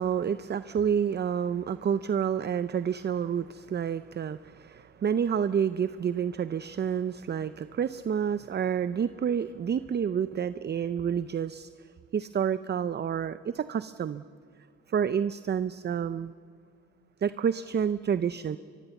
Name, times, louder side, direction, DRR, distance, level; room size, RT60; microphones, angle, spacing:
voice 1, 0.0-11.7 12.1-14.2 14.9-16.3 17.2-18.6, right 8 dB, 35° right, 14 dB, 0.6 m, -29 dB
24.0 x 22.5 x 7.1 m, 2.3 s
cardioid pair, 90°, 30 cm